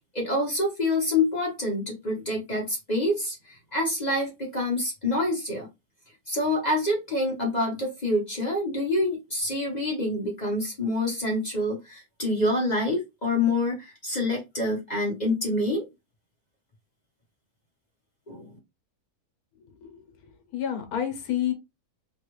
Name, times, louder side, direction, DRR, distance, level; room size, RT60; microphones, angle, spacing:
voice 1, 0.1-5.7 6.3-15.9 18.3-18.6, left 1 dB, 35° left, 0.9 m, -27 dB
voice 2, 20.5-21.5, left 10 dB, 75° left, 1.3 m, -29 dB
3.3 x 2.3 x 3.0 m
omnidirectional pair, 1.6 m